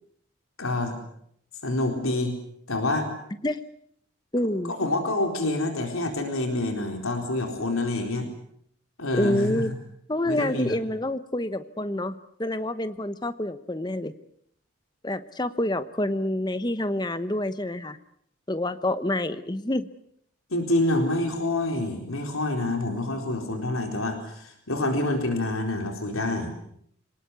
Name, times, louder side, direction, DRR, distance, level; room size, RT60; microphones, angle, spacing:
voice 1, 0.6-1.0 1.6-2.3 2.7-3.1 4.8-8.3 9.0-9.7 10.2-10.8 20.5-26.5, left 2 dB, 85° left, 4 dB, 4.1 m, -27 dB
voice 2, 4.3-4.7 9.2-9.7 10.1-14.1 15.0-18.0 18.5-19.9, left 1 dB, 20° left, 12 dB, 0.9 m, -27 dB
27.0 x 19.0 x 8.3 m, 0.70 s
head